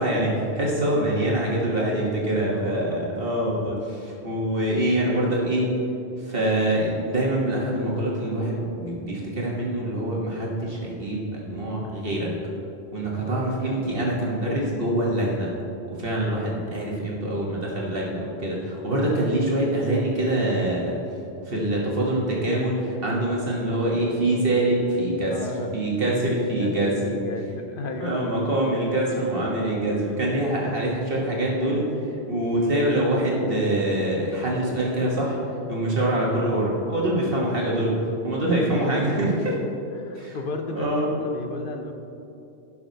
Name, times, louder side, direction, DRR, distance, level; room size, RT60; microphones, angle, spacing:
voice 1, 0.0-5.7 6.3-12.3 12.9-15.5 16.0-21.0 21.5-25.3 25.7-27.1 28.0-31.8 32.3-35.4 35.7-37.9 38.2-39.5 40.2-40.4 40.8-41.1, right 1 dB, 55° right, -3 dB, 1.7 m, -24 dB
voice 2, 2.5-3.0 13.1-14.3 25.3-25.7 26.1-26.7 27.0-28.7 38.4-39.2 39.9-41.9, left 3 dB, 55° left, 5 dB, 1.0 m, -34 dB
15.5 x 5.9 x 4.0 m, 2.8 s
omnidirectional pair, 1.1 m